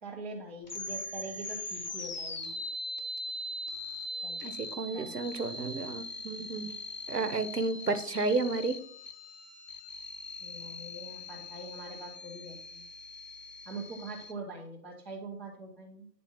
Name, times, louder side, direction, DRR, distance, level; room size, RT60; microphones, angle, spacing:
voice 1, 0.0-2.5 4.2-4.4 4.9-5.1 10.4-12.8 13.6-16.1, right 2 dB, 10° right, -6 dB, 0.7 m, -43 dB
sound 1, 0.6-14.3, left 1 dB, 25° left, 0.7 m, -41 dB
voice 2, 4.4-6.7 7.1-8.8, right 3 dB, 70° right, 11 dB, 1.2 m, -32 dB
9.7 x 4.3 x 5.9 m, 0.63 s
figure-of-eight pair, 135°, 50 cm